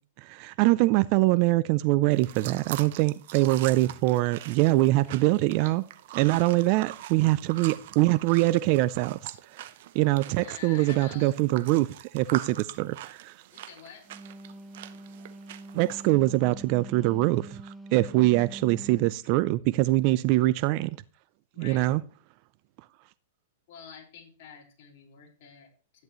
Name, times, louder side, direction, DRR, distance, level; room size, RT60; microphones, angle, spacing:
voice 1, 0.2-5.8 6.1-9.3 9.9-13.3 15.7-20.9 21.6-22.0, right 18 dB, 40° right, 0.4 m, -23 dB
sound 1, 2.1-16.1, right 13 dB, 55° right, 0.8 m, -43 dB
voice 2, 6.2-6.6 6.9-7.0 10.4-11.4 13.5-14.1 21.5-21.9 23.7-26.0, left 7 dB, 50° left, 4.8 m, -48 dB
Wind instrument woodwind instrument, 13.9-19.2, right 2 dB, 5° right, 1.0 m, -45 dB
12.5 x 10.5 x 3.1 m
hypercardioid pair, 145°, 0 cm